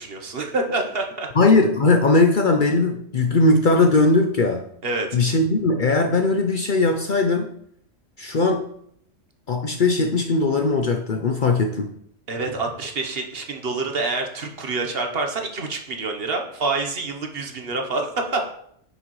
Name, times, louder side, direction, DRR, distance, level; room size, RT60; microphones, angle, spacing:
voice 1, 0.0-1.3 4.8-5.1 12.3-18.5, right 3 dB, 50° right, 3 dB, 1.2 m, -27 dB
voice 2, 1.3-4.7 5.1-7.5 8.2-8.7 9.5-11.9, left 3 dB, 50° left, 4 dB, 0.7 m, -19 dB
9.2 x 6.3 x 3.1 m, 0.69 s
omnidirectional pair, 1.3 m